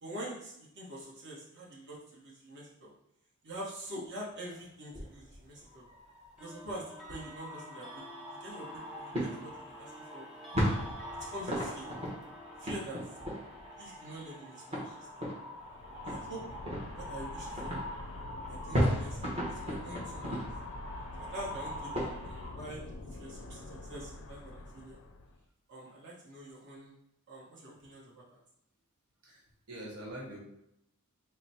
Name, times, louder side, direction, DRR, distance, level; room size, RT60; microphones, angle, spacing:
voice 1, 0.0-2.9 3.4-5.8 6.4-10.3 11.3-11.9 12.6-13.0 13.8-15.2 16.0-16.4 16.9-17.8 18.5-20.5 21.2-23.6 23.9-25.0 25.7-26.9 27.3-28.2, right 1 dB, 50° right, -6 dB, 1.1 m, -45 dB
sound 1, 4.5-4.7 6.4-19.2, equal, ahead, 0.9 m, -53 dB
sound 2, 4.9-22.5, equal, 30° right, 1.0 m, -37 dB
sound 3, 15.6-25.4, left 2 dB, 60° left, 0.4 m, -46 dB
voice 2, 29.2-30.4, right 1 dB, 85° right, -3 dB, 1.2 m, -44 dB
4.0 x 2.1 x 4.2 m, 0.79 s
head